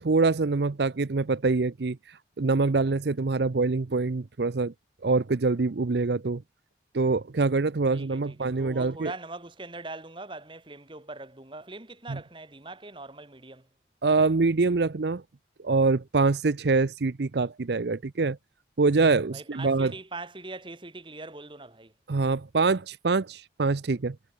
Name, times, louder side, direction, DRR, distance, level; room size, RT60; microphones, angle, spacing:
voice 1, 0.0-4.7 5.0-6.4 6.9-9.1 12.1-12.2 14.0-15.2 15.6-18.4 18.8-19.9 22.1-24.2, right 3 dB, 65° right, 0.6 m, -25 dB
voice 2, 7.9-13.7 19.3-21.9, right 2 dB, 25° right, 1.8 m, -42 dB
head